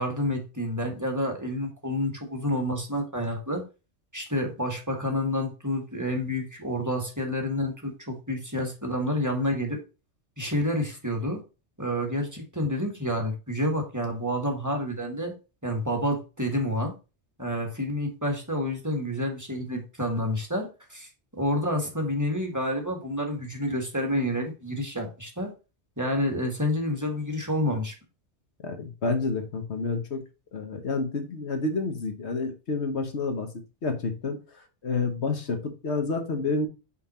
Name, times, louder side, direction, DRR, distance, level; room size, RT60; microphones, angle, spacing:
voice 1, 0.0-3.6 4.1-9.8 10.4-11.4 11.8-15.3 15.6-16.9 17.4-21.1 21.4-25.5 26.0-27.9, left 1 dB, 15° right, 2 dB, 1.6 m, -29 dB
voice 2, 28.6-30.2 30.5-33.5 33.8-34.4 34.8-36.7, left 3 dB, 80° left, 6 dB, 1.5 m, -29 dB
5.6 x 4.6 x 4.2 m, 0.30 s
omnidirectional pair, 1.1 m